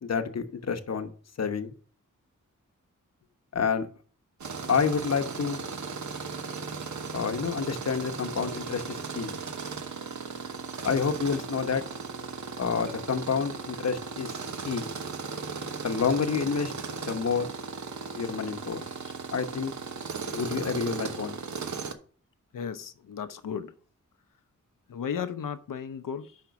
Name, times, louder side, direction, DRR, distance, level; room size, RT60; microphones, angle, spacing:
voice 1, 0.0-1.1 1.4-1.7 3.5-3.9 4.7-5.6 7.1-9.4 10.8-11.8 12.6-14.3 14.6-14.9 15.8-16.7 17.0-17.5 18.2-18.9 19.3-19.7 20.3-21.4, left 6 dB, 55° left, 0.9 m, -28 dB
Tools, 4.4-21.9, right 5 dB, 60° right, 1.0 m, -37 dB
voice 2, 22.5-23.7 24.9-26.4, left 7 dB, 85° left, 0.7 m, -35 dB
5.8 x 5.2 x 5.8 m
cardioid pair, 70°, 32 cm